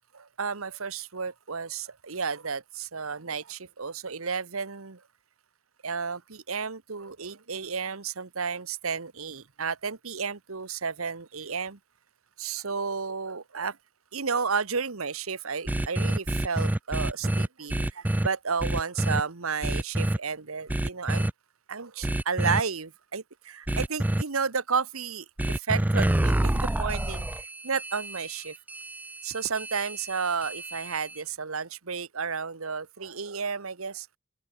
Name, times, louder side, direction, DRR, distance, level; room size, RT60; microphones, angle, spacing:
voice 1, 0.1-5.0 5.8-11.8 12.4-13.8 14.1-21.3 21.7-28.5 29.2-34.1, right 5 dB, 85° right, 1.3 m, -32 dB
sound 1, 15.7-18.3 18.6-19.2 19.6-20.2 20.7-21.3 22.0-22.6 23.7-24.2 25.4-31.2, right 1 dB, 10° right, 0.3 m, -27 dB
open air
head